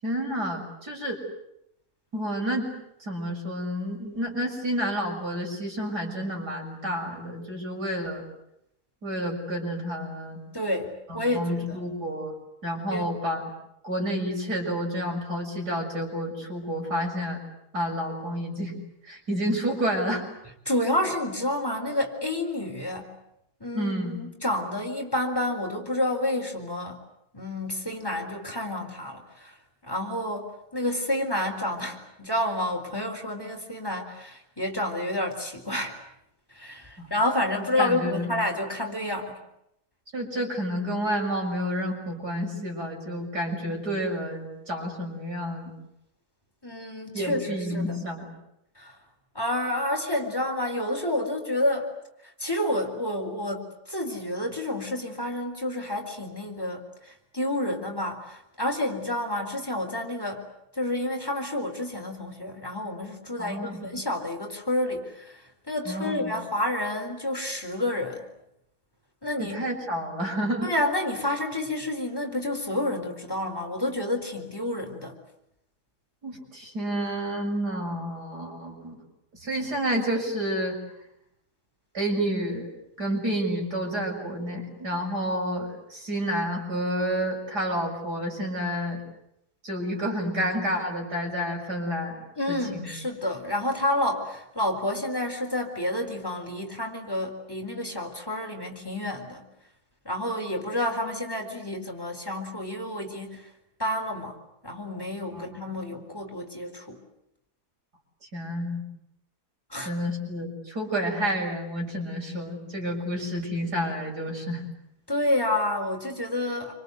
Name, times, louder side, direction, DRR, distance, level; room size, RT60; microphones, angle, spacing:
voice 1, 0.0-1.2 2.1-2.7 3.0-8.2 9.0-10.4 11.1-12.3 12.6-13.4 13.8-17.4 17.7-18.8 19.0-20.2 23.7-24.2 37.0-37.1 37.6-38.4 40.1-45.7 47.1-48.3 63.4-63.8 65.9-66.3 69.4-70.7 76.2-79.0 79.4-80.8 81.9-82.7 83.0-89.0 89.6-92.2 92.5-92.9 105.3-105.6 108.3-108.8 109.9-114.6, equal, 80° right, 0 dB, 7.2 m, -30 dB
voice 2, 10.5-11.8 12.9-13.1 20.7-23.1 23.6-27.0 27.3-29.5 29.9-36.0 36.5-39.4 46.6-48.0 48.8-48.9 49.3-51.9 52.4-60.5 60.8-68.3 69.2-69.5 70.6-75.1 92.4-99.5 100.0-103.4 103.8-104.3 104.6-107.0 109.7-109.9 115.1-116.7, left 1 dB, 15° left, 2 dB, 4.2 m, -29 dB
28.0 x 26.0 x 8.1 m, 0.80 s
omnidirectional pair, 1.7 m